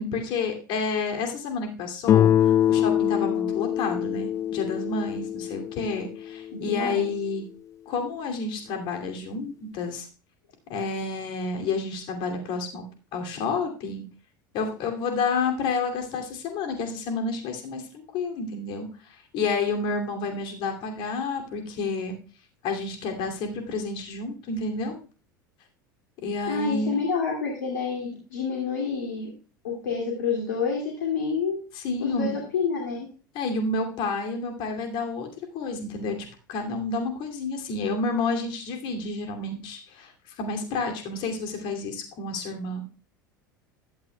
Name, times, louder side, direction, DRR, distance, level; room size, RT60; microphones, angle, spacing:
voice 1, 0.0-7.4 7.9-10.1 10.7-12.8 13.1-14.0 14.5-22.1 22.6-25.0 26.2-26.9 31.7-32.3 33.3-35.3 35.5-36.2 36.5-40.1 40.4-42.8, left 4 dB, 45° left, 3 dB, 2.8 m, -30 dB
Guitar, 2.1-6.9, left 10 dB, 30° left, 0.4 m, -24 dB
voice 2, 6.5-7.1 26.5-29.3 29.6-31.6 32.0-33.1, left 5 dB, 65° left, 0 dB, 2.5 m, -28 dB
15.5 x 12.0 x 2.3 m, 0.38 s
figure-of-eight pair, 75°, 11 cm